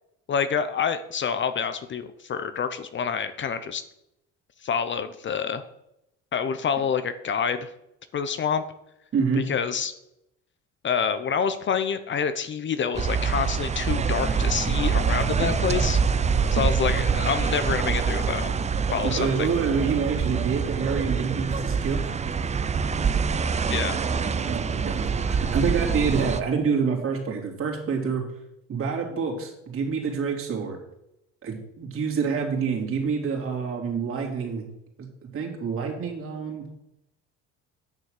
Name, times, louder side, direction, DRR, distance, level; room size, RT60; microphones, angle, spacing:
voice 1, 0.3-3.8 4.6-5.6 6.3-7.7 8.1-8.6 9.4-9.9 10.8-16.0 16.5-18.5 18.9-19.5 23.7-24.0, left 7 dB, 40° left, 11 dB, 0.8 m, -27 dB
sound 1, 12.9-26.4, right 6 dB, 20° right, 0.6 m, -25 dB
voice 2, 19.0-22.0 22.9-23.0 24.4-28.2 28.7-30.8 31.4-34.6 35.3-36.7, right 5 dB, 45° right, 1 dB, 3.2 m, -27 dB
9.7 x 6.9 x 6.6 m, 0.83 s
cardioid pair, 105°, 31 cm